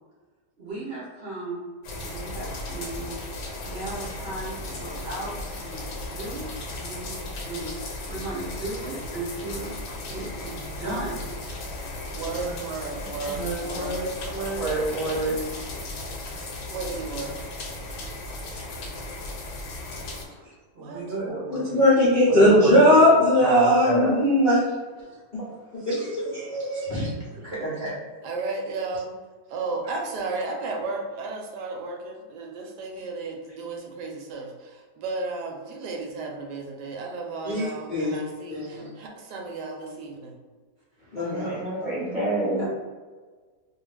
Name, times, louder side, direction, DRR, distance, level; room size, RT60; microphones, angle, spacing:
voice 1, 0.6-1.6 2.0-3.1 3.6-6.5 6.7-9.7 10.1-11.2 11.9-12.5 12.9-14.6 20.7-21.4 27.1-27.9 37.4-37.6 42.6-42.7, right 2 dB, 50° right, -8 dB, 0.8 m, -35 dB
sound 1, 1.8-20.2, left 2 dB, 75° left, 1.2 m, -36 dB
voice 2, 12.2-13.9 14.3-14.5 16.7-17.4 20.8-21.0 28.2-29.1 29.5-40.4, right 3 dB, 80° right, 1 dB, 1.2 m, -34 dB
voice 3, 14.6-15.4 21.2-21.6 22.2-23.0 23.4-24.1 25.9-26.0 41.2-42.6, right 2 dB, ahead, -8 dB, 0.8 m, -27 dB
voice 4, 21.5-24.6 25.9-27.1 37.4-38.2 38.5-38.9 41.1-42.1, left 1 dB, 45° left, -11 dB, 0.6 m, -20 dB
2.7 x 2.3 x 3.2 m, 1.4 s
omnidirectional pair, 1.8 m